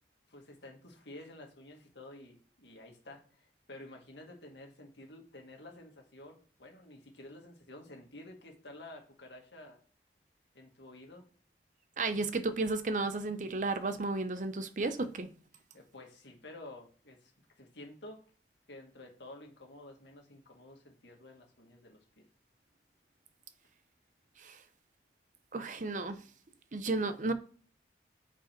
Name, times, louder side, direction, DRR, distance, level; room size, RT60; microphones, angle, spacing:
voice 1, 0.3-9.8 10.5-11.3 15.7-17.3 17.6-18.2 18.7-22.3, left 1 dB, 85° left, 1.8 m, -51 dB
voice 2, 12.0-15.3 24.4-24.6 25.5-26.2 26.7-27.3, right 3 dB, 45° right, 0.6 m, -33 dB
5.2 x 5.0 x 4.5 m
head